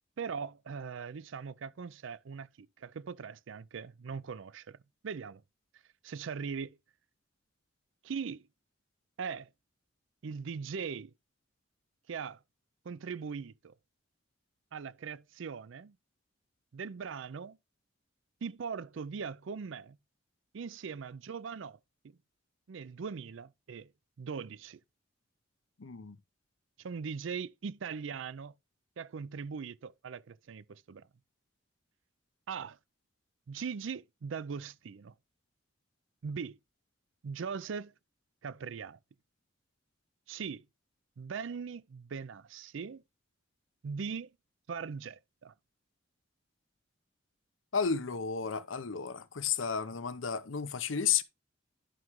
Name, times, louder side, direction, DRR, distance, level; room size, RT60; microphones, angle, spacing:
voice 1, 0.2-4.8 5.0-5.4 6.0-6.8 8.0-8.5 9.2-9.5 10.2-11.1 12.1-12.4 12.8-13.8 14.7-16.0 16.7-17.6 18.4-20.0 20.5-21.8 22.0-22.2 22.7-23.9 24.2-24.8 26.8-28.5 29.0-31.1 32.5-32.8 33.5-35.1 36.2-36.6 37.2-37.9 38.4-39.0 40.3-40.6 41.2-43.0 43.8-44.3 44.7-45.5, right 6 dB, 75° right, 0.4 m, -40 dB
voice 2, 25.8-26.2 47.7-51.2, left 7 dB, 80° left, 0.7 m, -32 dB
11.5 x 5.9 x 3.1 m
head